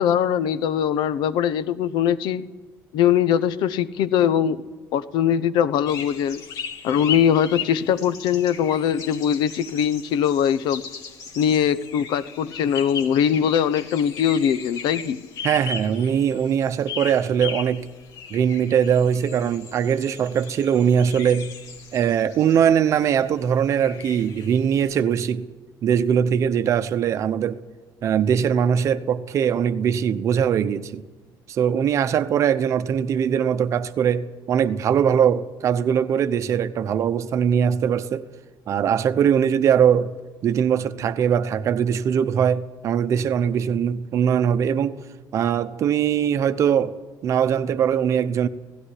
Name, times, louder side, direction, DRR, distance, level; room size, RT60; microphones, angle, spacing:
voice 1, 0.0-2.4 2.9-4.6 4.9-6.4 6.8-10.8 11.4-15.2, left 9 dB, 75° left, 0.9 m, -21 dB
sound 1, 5.9-25.0, left 7 dB, 50° left, 2.2 m, -37 dB
voice 2, 15.4-17.9 18.3-21.5 21.9-25.5 25.8-27.6 28.0-31.0 31.5-38.3 38.7-40.1 40.4-45.0 45.3-47.0 47.2-48.5, right 8 dB, 40° right, 0.8 m, -21 dB
17.0 x 16.5 x 9.9 m
cardioid pair, 175°, 8 cm